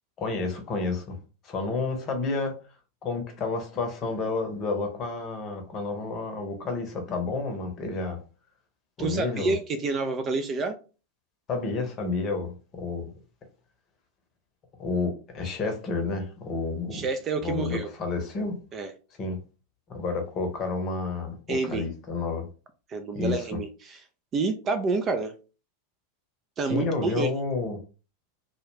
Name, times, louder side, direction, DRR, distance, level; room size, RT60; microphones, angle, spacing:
voice 1, 0.2-1.2 1.4-2.5 3.0-8.2 9.0-9.5 11.5-13.1 14.8-17.1 17.4-18.6 19.2-19.4 19.9-22.5 23.1-23.6 26.7-27.8, left 3 dB, 30° left, 0.8 m, -30 dB
voice 2, 9.0-10.7 16.9-17.9 18.7-18.9 21.5-21.8 22.9-24.0 24.3-25.3 26.6-27.3, right 3 dB, 25° right, 0.3 m, -28 dB
2.3 x 2.2 x 3.1 m
figure-of-eight pair, 90°, 0 cm